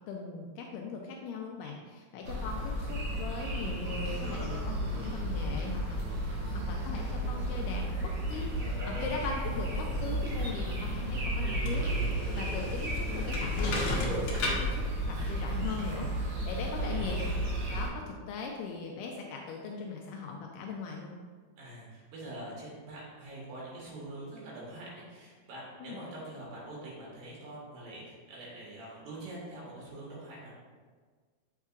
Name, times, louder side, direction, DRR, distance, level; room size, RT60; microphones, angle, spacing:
voice 1, 0.1-6.0 6.3-14.7 15.1-17.3 17.7-21.2 25.8-26.0, left 4 dB, 80° left, 1 dB, 2.1 m, -40 dB
sound 1, 2.2-17.9, right 1 dB, 60° right, 2.4 m, -33 dB
sound 2, 11.4-16.9, left 2 dB, 65° left, 2.0 m, -38 dB
voice 2, 16.5-17.1 21.6-30.5, right 1 dB, 80° right, -5 dB, 3.5 m, -45 dB
7.1 x 5.5 x 2.4 m, 1.5 s
omnidirectional pair, 4.0 m